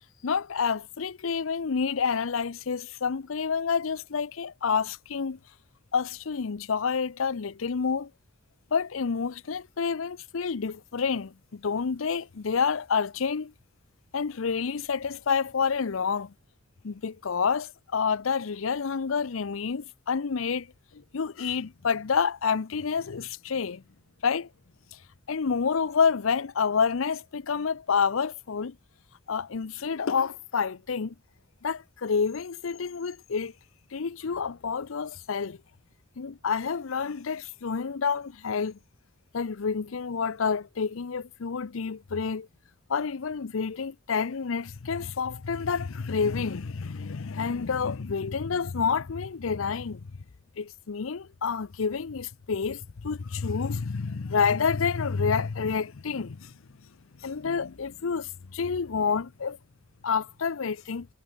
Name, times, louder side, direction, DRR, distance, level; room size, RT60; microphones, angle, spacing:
voice 1, 0.2-5.4 5.9-8.1 8.7-13.5 14.1-16.3 16.8-20.7 20.9-23.8 24.2-24.5 24.9-25.0 25.3-28.7 29.3-31.1 31.6-33.5 33.9-35.6 36.2-38.8 39.3-42.5 42.9-50.1 50.6-56.5 57.2-59.6 60.0-61.1, left 5 dB, 85° left, 0.6 m, -28 dB
head